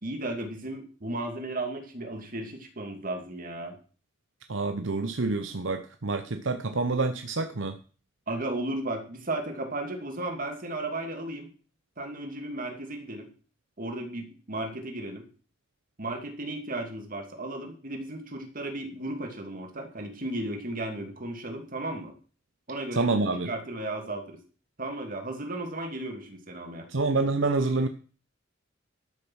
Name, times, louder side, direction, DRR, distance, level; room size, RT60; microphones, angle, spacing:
voice 1, 0.0-3.8 8.3-11.5 12.0-13.3 13.8-15.3 16.0-22.1 22.7-23.1 23.4-24.4 24.8-26.9, right 2 dB, 45° right, 4 dB, 2.5 m, -35 dB
voice 2, 4.5-7.8 22.9-23.5 26.9-27.9, right 3 dB, 70° right, 8 dB, 0.9 m, -27 dB
12.5 x 6.8 x 6.3 m, 0.40 s
head